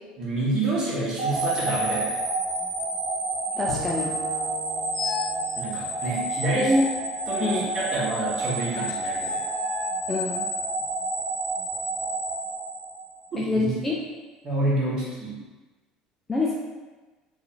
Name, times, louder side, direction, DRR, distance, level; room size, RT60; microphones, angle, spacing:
voice 1, 0.2-2.1 5.6-6.7 7.3-9.4 13.3-13.7 14.4-15.4, right 2 dB, 25° right, -8 dB, 1.2 m, -28 dB
sound 1, 1.2-13.3, right 2 dB, 65° right, 1.1 m, -29 dB
voice 2, 3.6-4.1 6.6-6.9 7.4-7.7 10.1-10.5 13.4-13.9 16.3-16.5, left 2 dB, 10° left, -4 dB, 0.3 m, -25 dB
Bowed string instrument, 3.7-6.9, left 1 dB, 85° right, 0.8 m, -40 dB
sound 2, 4.9-5.4 6.6-7.8 9.2-10.1, left 7 dB, 70° left, 0.5 m, -36 dB
2.8 x 2.5 x 4.2 m, 1.2 s
cardioid pair, 175°, 2 cm